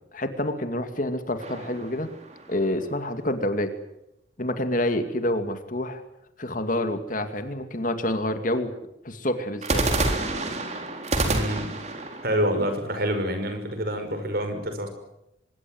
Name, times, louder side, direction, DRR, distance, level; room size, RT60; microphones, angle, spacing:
voice 1, 0.1-2.1 2.5-3.7 4.4-6.0 6.4-8.7 9.0-9.9, left 1 dB, 45° left, 8 dB, 2.5 m, -27 dB
sound 1, 1.4-2.8 9.6-13.6, right 2 dB, 35° right, 4.0 m, -29 dB
voice 2, 11.2-11.7 12.2-14.9, equal, 55° right, 7 dB, 5.8 m, -27 dB
24.5 x 22.0 x 7.9 m, 0.85 s
head